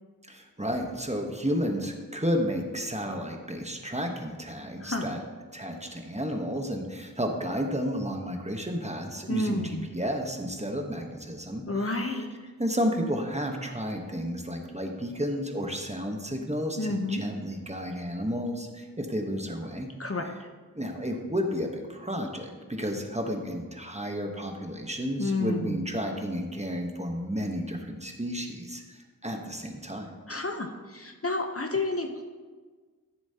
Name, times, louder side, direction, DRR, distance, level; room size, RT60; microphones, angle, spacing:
voice 1, 0.2-5.2 5.5-12.0 12.6-19.9 20.7-30.2, equal, 20° right, 3 dB, 1.1 m, -32 dB
voice 2, 4.8-5.1 9.3-9.9 11.7-12.3 16.8-17.2 20.0-20.5 25.2-25.8 30.3-32.2, left 2 dB, 40° left, 3 dB, 0.9 m, -30 dB
14.0 x 7.1 x 2.9 m, 1.4 s
wide cardioid pair, 50°, 34 cm